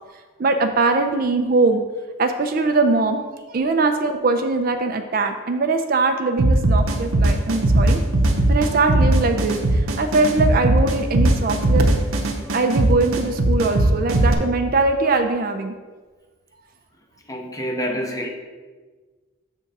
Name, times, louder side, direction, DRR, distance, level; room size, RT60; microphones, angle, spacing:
voice 1, 0.4-1.8 2.2-3.2 3.5-8.0 8.5-11.9 12.5-15.7, right 3 dB, 45° right, 7 dB, 0.4 m, -21 dB
sound 1, 6.4-14.3, right 1 dB, 90° right, 0.8 m, -18 dB
voice 2, 17.3-18.3, equal, 15° left, 2 dB, 0.7 m, -27 dB
7.0 x 3.6 x 5.3 m, 1.4 s
head